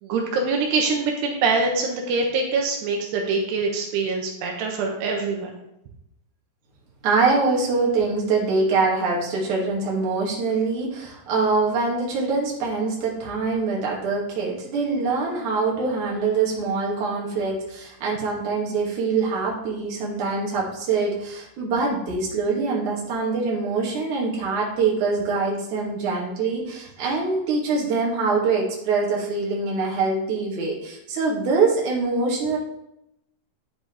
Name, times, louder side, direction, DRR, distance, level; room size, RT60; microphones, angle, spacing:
voice 1, 0.0-5.6, right 4 dB, 85° right, 1 dB, 3.4 m, -24 dB
voice 2, 7.0-32.6, right 4 dB, 55° right, -3 dB, 3.4 m, -24 dB
10.5 x 7.9 x 3.4 m, 0.82 s
omnidirectional pair, 4.6 m